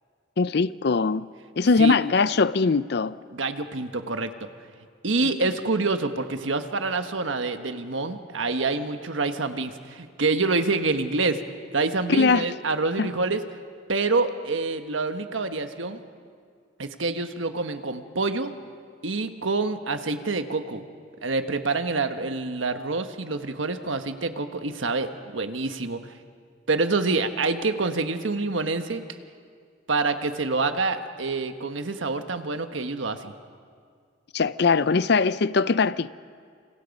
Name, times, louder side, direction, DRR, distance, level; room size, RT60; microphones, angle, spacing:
voice 1, 0.4-1.3 1.6-3.1 12.1-12.4 13.0-13.1 34.3-36.1, left 4 dB, 60° left, 0.5 m, -21 dB
voice 2, 3.3-4.5 5.0-11.4 11.7-13.4 13.9-16.0 16.8-18.5 19.0-20.8 21.2-26.1 26.7-29.0 29.9-33.3, right 3 dB, 80° right, 1.3 m, -27 dB
28.5 x 26.5 x 5.4 m
head